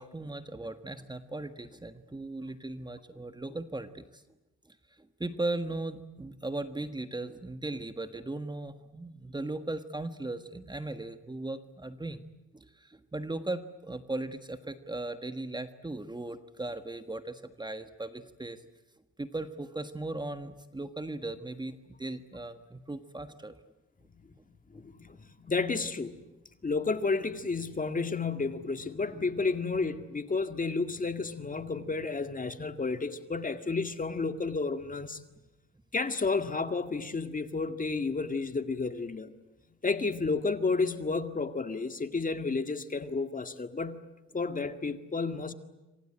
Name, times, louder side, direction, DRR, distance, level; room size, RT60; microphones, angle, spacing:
voice 1, 0.0-4.2 4.7-12.2 12.5-18.6 19.2-23.6, right 2 dB, 15° right, 1.5 m, -38 dB
voice 2, 24.7-26.2 26.6-35.2 35.9-39.3 39.8-44.1 44.3-45.5, left 4 dB, 25° left, 2.0 m, -31 dB
27.0 x 25.0 x 8.8 m
cardioid pair, 90°, 30 cm